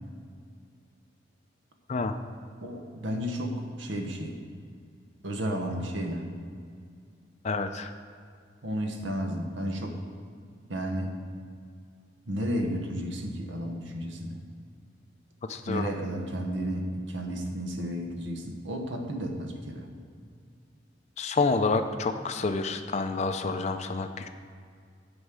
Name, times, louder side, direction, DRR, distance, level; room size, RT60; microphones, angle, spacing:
voice 1, 2.6-4.4 5.2-6.3 8.6-10.0 10.7-11.1 12.3-14.3 15.7-19.9, equal, 70° right, 3 dB, 1.1 m, -32 dB
voice 2, 7.4-7.9 15.5-15.9 21.2-24.3, left 3 dB, 35° left, 7 dB, 0.4 m, -28 dB
8.1 x 5.3 x 7.4 m, 2.2 s
head